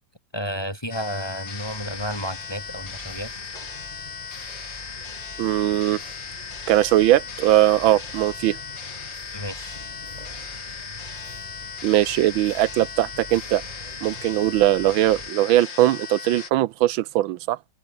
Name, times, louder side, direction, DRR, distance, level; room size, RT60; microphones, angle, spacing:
voice 1, 0.3-3.3 9.3-9.8, equal, 10° left, 7.4 m, -31 dB
sound 1, 0.9-16.5, left 5 dB, 60° left, 3.3 m, -37 dB
sound 2, 1.7-15.3, right 1 dB, 20° right, 7.2 m, -45 dB
voice 2, 5.4-6.0 6.7-8.6 11.8-13.6 14.0-17.6, right 14 dB, 80° right, 1.4 m, -20 dB
open air
omnidirectional pair, 2.3 m